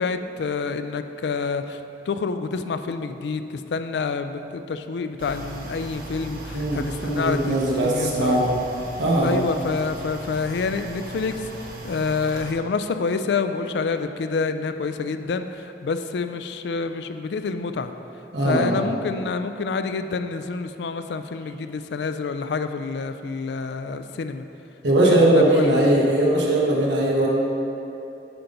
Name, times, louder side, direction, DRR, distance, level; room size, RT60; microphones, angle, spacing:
voice 1, 0.0-1.8 2.1-8.5 9.2-17.9 18.4-24.4 25.0-25.8, left 4 dB, 70° left, 9 dB, 0.4 m, -28 dB
sound 1, 5.2-12.5, right 2 dB, 50° right, 0.7 m, -37 dB
voice 2, 6.5-8.5 9.0-9.4 18.3-18.8 24.8-27.3, right 1 dB, 80° right, -4 dB, 1.0 m, -20 dB
8.8 x 3.9 x 5.3 m, 2.9 s
head